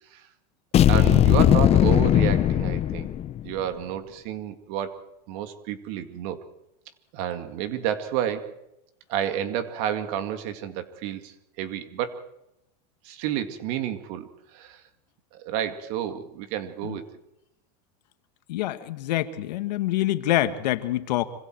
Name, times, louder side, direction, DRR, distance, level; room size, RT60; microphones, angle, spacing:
sound 1, 0.7-3.5, left 11 dB, 30° left, 0.9 m, -19 dB
voice 1, 0.8-3.1 3.4-5.0 5.3-6.4 7.1-8.6 9.1-12.3 13.0-14.8 15.3-17.0, right 10 dB, 60° right, 9 dB, 2.2 m, -30 dB
voice 2, 18.5-21.2, left 14 dB, 85° left, 9 dB, 1.9 m, -26 dB
26.0 x 24.5 x 4.6 m, 0.85 s
supercardioid pair, 140°, 21 cm